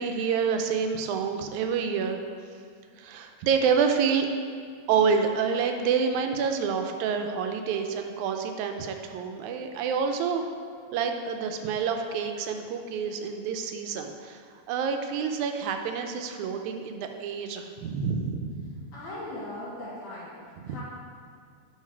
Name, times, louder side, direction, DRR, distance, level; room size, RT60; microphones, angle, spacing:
voice 1, 0.0-2.2 3.0-4.3 4.9-10.5 10.9-18.6 20.6-20.8, right 6 dB, 85° right, 5 dB, 2.0 m, -28 dB
voice 2, 18.9-20.8, left 1 dB, 75° left, -8 dB, 3.1 m, -39 dB
9.6 x 3.9 x 4.5 m, 2.2 s
omnidirectional pair, 3.4 m